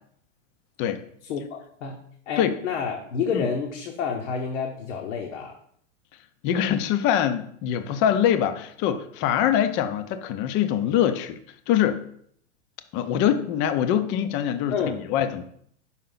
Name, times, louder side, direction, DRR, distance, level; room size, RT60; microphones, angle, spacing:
voice 1, 1.2-2.0 2.3-5.6 14.7-15.0, left 6 dB, 70° left, 2 dB, 1.0 m, -29 dB
voice 2, 6.4-11.4 11.7-12.0 12.9-15.4, left 10 dB, 30° left, 10 dB, 0.5 m, -24 dB
5.8 x 4.6 x 3.9 m, 0.65 s
hypercardioid pair, 120°, 37 cm